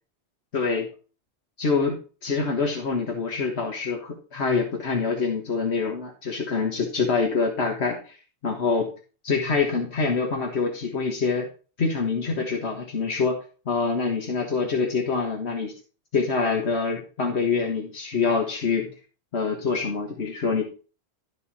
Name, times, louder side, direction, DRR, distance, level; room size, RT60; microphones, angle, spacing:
voice 1, 0.5-0.9 1.6-8.1 8.4-8.9 9.2-11.5 11.8-13.4 13.6-15.7 16.1-18.9 19.3-20.6, left 4 dB, 80° left, 2 dB, 1.7 m, -25 dB
12.0 x 5.4 x 4.2 m, 0.35 s
omnidirectional pair, 1.1 m